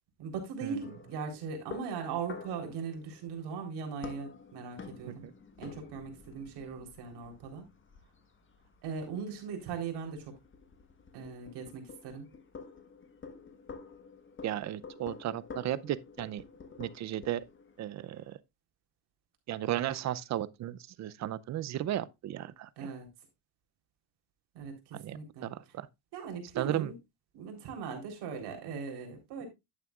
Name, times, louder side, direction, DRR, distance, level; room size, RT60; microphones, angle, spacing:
voice 1, 0.2-5.3 5.6-7.7 8.8-10.3 11.1-12.3 22.8-23.1 24.5-25.7 26.1-27.0 27.3-29.5, right 5 dB, 60° right, 3.9 m, -39 dB
sound 1, 0.8-18.3, left 5 dB, 25° left, 1.4 m, -50 dB
voice 2, 14.4-16.4 16.8-17.4 17.8-18.4 19.5-22.9 24.9-25.9 26.6-26.9, right 12 dB, 40° right, 0.6 m, -35 dB
11.0 x 8.8 x 2.4 m
cardioid pair, 120°, 44 cm